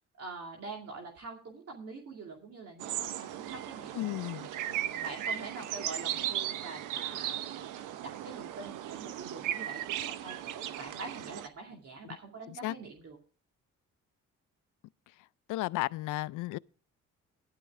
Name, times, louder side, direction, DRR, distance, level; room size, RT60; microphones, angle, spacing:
voice 1, 0.2-4.0 4.6-13.2, right 3 dB, 55° right, 2.4 m, -45 dB
sound 1, 2.8-11.5, right 11 dB, 90° right, 0.8 m, -37 dB
voice 2, 3.9-4.5 12.6-12.7 15.5-16.6, left 18 dB, 85° left, 0.5 m, -33 dB
12.5 x 11.0 x 3.6 m
cardioid pair, 90°, 30 cm